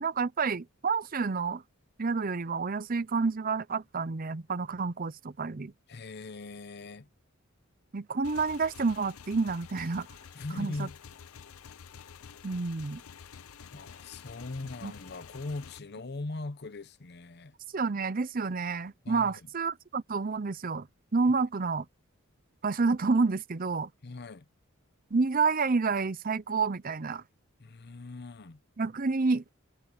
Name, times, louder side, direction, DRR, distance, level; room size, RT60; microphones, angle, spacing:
voice 1, 0.0-1.6 2.0-5.7 7.9-10.1 10.6-10.9 12.4-13.0 14.8-14.9 17.7-20.9 21.1-21.9 22.6-23.9 25.1-27.2 28.8-29.4, right 4 dB, 40° right, 0.6 m, -29 dB
voice 2, 5.9-7.1 10.3-11.0 12.5-12.6 13.7-17.5 19.0-19.5 24.0-24.5 27.6-28.6, left 2 dB, 50° left, 0.8 m, -40 dB
Motorcycle / Engine, 8.2-15.8, left 7 dB, 85° left, 0.6 m, -49 dB
head